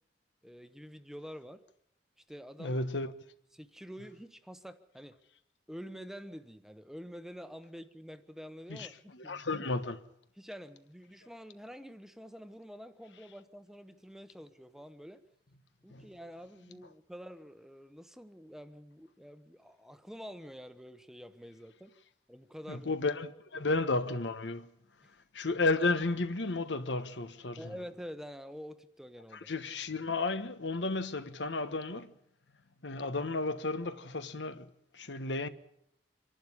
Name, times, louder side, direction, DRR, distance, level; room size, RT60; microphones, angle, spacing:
voice 1, 0.4-1.6 2.2-2.8 3.5-5.2 5.7-9.7 10.4-15.2 15.8-21.9 22.3-22.9 23.5-23.7 25.0-25.1 27.6-29.5, equal, 5° right, 0.9 m, -47 dB
voice 2, 2.6-3.1 8.7-8.9 9.2-10.0 15.9-16.0 22.7-24.7 25.3-27.7 29.5-32.1 32.8-35.5, left 3 dB, 80° left, 1.3 m, -33 dB
25.5 x 11.5 x 9.8 m
head